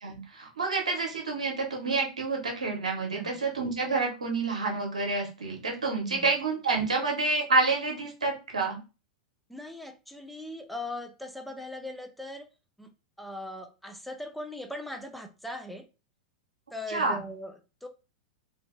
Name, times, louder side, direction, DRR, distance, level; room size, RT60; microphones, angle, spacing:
voice 1, 0.0-8.8 16.9-17.2, right 3 dB, 75° right, 0.8 m, -28 dB
voice 2, 3.1-3.4 5.9-6.3 9.5-12.5 12.8-12.9 13.2-15.9 16.7-17.9, left 1 dB, ahead, 0.3 m, -40 dB
2.6 x 2.5 x 2.5 m
figure-of-eight pair, 95°, 4 cm